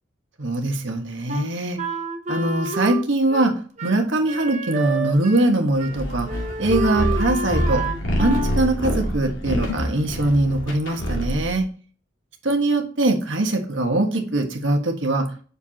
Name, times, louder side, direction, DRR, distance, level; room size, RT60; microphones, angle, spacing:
voice 1, 0.4-1.8 2.3-3.5 3.8-6.3 6.6-7.8 8.2-11.6 12.4-15.3, right 2 dB, 75° right, 3 dB, 1.5 m, -22 dB
Wind instrument woodwind instrument, 1.3-5.5 5.8-6.0 6.2-8.6, right 3 dB, 35° right, 0.8 m, -29 dB
sound 1, 5.9-11.6, equal, 80° left, 2.4 m, -26 dB
6.6 x 5.0 x 2.9 m, 0.40 s
head